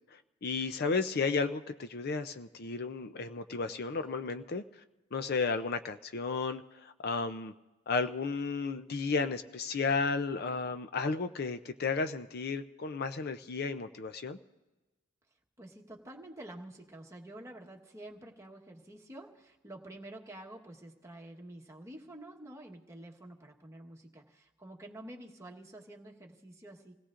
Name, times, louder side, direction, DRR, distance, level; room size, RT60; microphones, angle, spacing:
voice 1, 0.4-4.6 5.1-7.5 7.9-14.4, left 4 dB, 55° left, 9 dB, 0.6 m, -33 dB
voice 2, 15.6-27.0, right 1 dB, 15° right, 0 dB, 1.3 m, -49 dB
27.0 x 17.5 x 2.5 m, 1.1 s
head